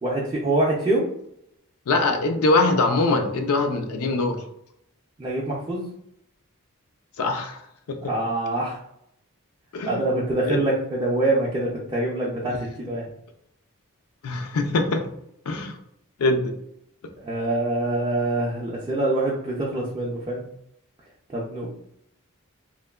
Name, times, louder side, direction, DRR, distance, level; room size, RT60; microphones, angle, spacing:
voice 1, 0.0-1.1 5.2-5.9 8.1-8.8 9.9-13.1 17.2-20.4 21.3-21.7, right 2 dB, 20° right, -5 dB, 0.4 m, -25 dB
voice 2, 1.9-4.4 7.2-7.6 7.9-8.0 9.7-10.0 10.5-10.6 12.5-12.6 14.2-15.0 15.5-15.7 16.2-16.5, left 2 dB, 80° left, 6 dB, 0.4 m, -22 dB
3.1 x 2.1 x 2.3 m, 0.76 s
head